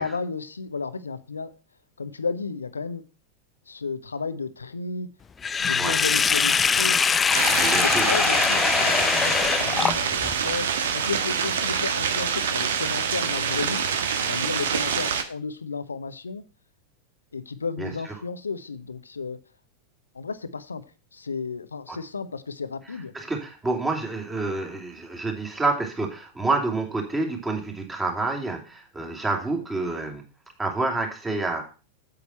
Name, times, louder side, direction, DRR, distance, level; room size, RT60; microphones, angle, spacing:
voice 1, 0.0-1.5 2.0-3.0 3.7-5.1 5.6-7.2 7.6-13.9 14.2-16.4 17.3-19.4 20.1-20.8 21.1-23.1, left 4 dB, 75° left, 13 dB, 0.9 m, -33 dB
Sink (filling or washing), 5.4-10.3, left 6 dB, 20° left, 0.4 m, -22 dB
sound 1, 7.3-15.2, right 7 dB, 60° right, 1.3 m, -26 dB
voice 2, 7.5-8.1 17.8-17.9 23.1-30.2 30.6-31.6, right 3 dB, 10° right, 1 dB, 3.1 m, -28 dB
8.7 x 8.4 x 4.3 m, 0.34 s
figure-of-eight pair, 90°, 0 cm